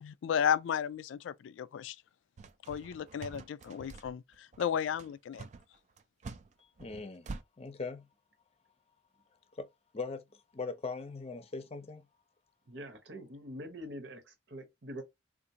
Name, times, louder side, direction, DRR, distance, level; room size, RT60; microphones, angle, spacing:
voice 1, 0.0-2.0 2.7-5.5, left 8 dB, 85° left, 0.3 m, -33 dB
sound 1, 2.4-7.4, right 4 dB, 40° right, 0.4 m, -46 dB
voice 2, 6.8-7.3 7.6-8.1 9.5-9.7 9.9-10.2 10.5-12.0, left 4 dB, 35° left, 0.5 m, -40 dB
voice 3, 12.7-15.0, equal, 75° right, 1.1 m, -44 dB
3.7 x 2.5 x 2.7 m
head